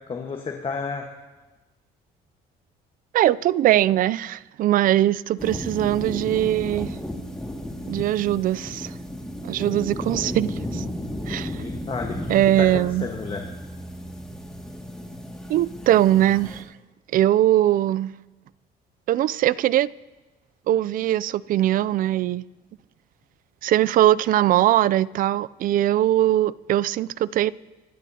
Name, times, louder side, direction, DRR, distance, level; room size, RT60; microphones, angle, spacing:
voice 1, 0.1-1.1 11.5-13.4, left 5 dB, 35° left, 1.4 m, -32 dB
voice 2, 3.1-7.0 7.9-8.9 9.4-10.8 11.3-11.6 12.3-13.1 15.5-16.7 17.1-18.1 19.1-19.9 20.7-22.4 23.6-27.5, right 13 dB, 55° right, 0.4 m, -21 dB
sound 1, 5.4-16.6, equal, 5° left, 2.1 m, -34 dB
26.5 x 12.5 x 2.8 m
cardioid pair, 110°, 17 cm